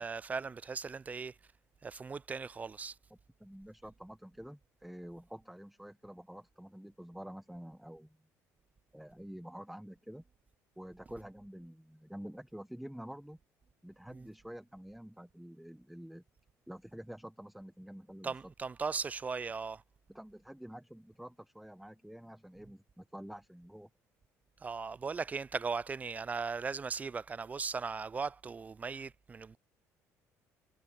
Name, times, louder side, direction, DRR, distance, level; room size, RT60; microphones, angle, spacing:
voice 1, 0.0-1.4 1.8-3.0 14.1-14.3 18.2-19.8 24.6-29.6, right 5 dB, 25° right, 0.4 m, -38 dB
voice 2, 3.4-8.2 8.9-10.2 10.8-13.4 13.8-16.2 16.7-18.4 20.1-23.9, equal, ahead, 1.1 m, -48 dB
cardioid pair, 95°, 6 cm